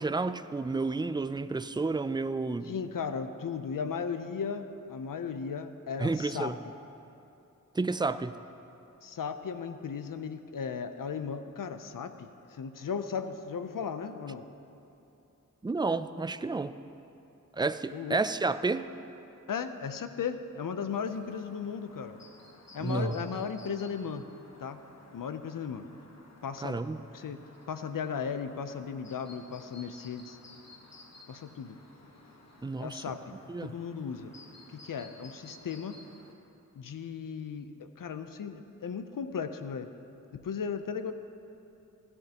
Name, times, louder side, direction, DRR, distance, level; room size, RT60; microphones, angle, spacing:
voice 1, 0.0-2.7 6.0-6.6 7.7-8.4 15.6-16.8 17.5-18.9 22.8-23.2 26.6-27.1 32.6-33.2 33.5-33.7, right 3 dB, 15° right, 12 dB, 0.3 m, -31 dB
voice 2, 2.7-6.5 9.0-14.5 17.9-18.2 19.5-22.2 22.7-24.3 24.6-24.8 25.1-25.9 26.4-26.8 27.1-27.4 27.7-30.4 31.3-31.8 32.8-34.3 34.7-36.0 36.8-39.9 40.3-41.1, left 6 dB, 80° left, 9 dB, 0.6 m, -36 dB
Chirp tweet, 20.9-36.3, left 2 dB, 55° left, 1.3 m, -55 dB
16.5 x 12.0 x 2.9 m, 2.8 s
wide cardioid pair, 65°, 32 cm